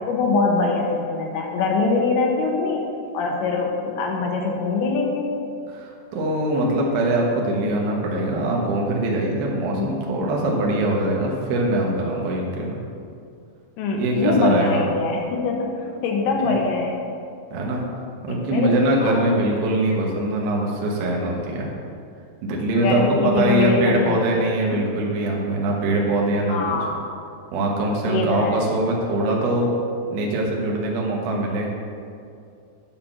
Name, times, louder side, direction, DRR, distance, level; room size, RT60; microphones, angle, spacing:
voice 1, 0.1-5.3 9.8-9.9 13.8-17.1 18.3-18.7 19.0-19.2 22.8-24.3 24.7-25.0 26.5-27.0 28.0-28.6, left 3 dB, 75° left, 0 dB, 3.1 m, -23 dB
voice 2, 5.7-12.8 13.9-14.8 17.5-17.8 18.2-21.7 22.4-26.8 27.5-29.7 30.1-31.7, right 1 dB, 65° right, -2 dB, 2.6 m, -22 dB
11.0 x 4.8 x 7.2 m, 2.4 s
omnidirectional pair, 5.5 m